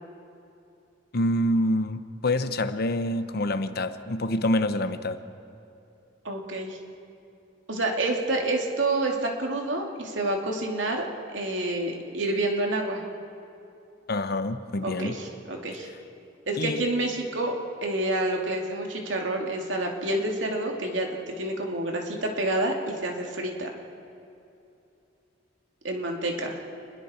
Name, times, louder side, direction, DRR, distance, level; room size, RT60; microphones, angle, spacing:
voice 1, 1.1-5.2 14.1-15.2 16.6-16.8, left 1 dB, 55° left, 11 dB, 0.9 m, -26 dB
voice 2, 6.2-6.8 7.7-11.0 11.3-13.0 14.8-15.9 16.5-17.5 17.8-23.7 25.8-26.6, right 2 dB, 85° right, 1 dB, 2.6 m, -28 dB
29.0 x 21.0 x 4.4 m, 2.7 s
head